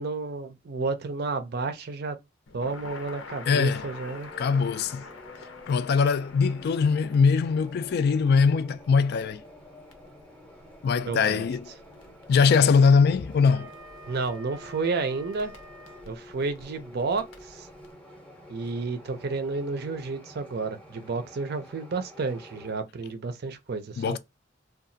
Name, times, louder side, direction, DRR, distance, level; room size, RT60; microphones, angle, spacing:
voice 1, 0.0-2.2 2.5-4.3 11.0-11.5 14.1-15.5 16.1-17.7 18.5-24.2, right 4 dB, 55° right, 0.5 m, -31 dB
Crackle, 2.5-17.9, left 4 dB, 85° left, 0.7 m, -48 dB
voice 2, 3.5-3.8 4.4-5.0 5.7-9.4 10.8-11.7 12.3-13.7 24.0-24.2, left 5 dB, 55° left, 0.3 m, -22 dB
sound 1, 3.6-22.7, equal, 5° left, 0.6 m, -49 dB
Wind instrument woodwind instrument, 13.0-16.1, right 1 dB, 90° right, 0.7 m, -48 dB
2.8 x 2.3 x 2.6 m
head